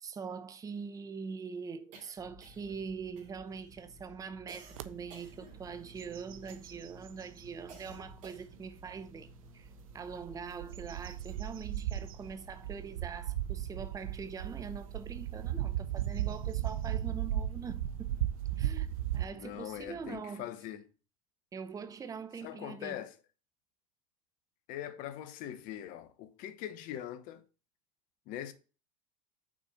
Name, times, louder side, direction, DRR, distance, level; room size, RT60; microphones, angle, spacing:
voice 1, 0.0-9.7 9.9-18.2 18.6-18.9 19.1-20.5 21.5-23.0, right 5 dB, 20° right, 0.7 m, -43 dB
sound 1, 1.9-2.8 3.2-3.7 4.5-6.0 6.5-6.9 7.7-8.7, right 4 dB, 40° right, 2.5 m, -54 dB
sound 2, 2.2-20.2, right 1 dB, 20° left, 2.7 m, -56 dB
sound 3, 4.8-4.9 5.4-5.7 6.0-7.5 8.1-8.2 9.9-19.3, right 12 dB, 75° right, 0.6 m, -36 dB
voice 2, 19.3-20.8 22.4-23.1 24.7-27.4 28.3-28.5, left 11 dB, 50° left, 0.9 m, -42 dB
6.1 x 4.4 x 6.0 m
hypercardioid pair, 85°, 18 cm